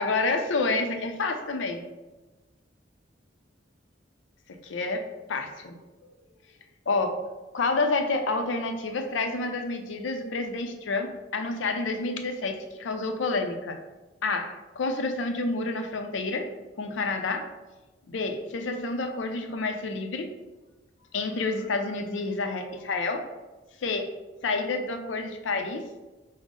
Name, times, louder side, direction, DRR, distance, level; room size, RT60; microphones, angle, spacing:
voice 1, 0.0-1.8 4.6-5.7 6.9-7.2 7.5-13.8 14.2-16.5 16.8-17.5 18.1-20.3 21.1-23.3 23.8-24.1 24.4-25.8, left 3 dB, 80° left, 5 dB, 0.5 m, -29 dB
5.0 x 2.0 x 3.5 m, 1.2 s
head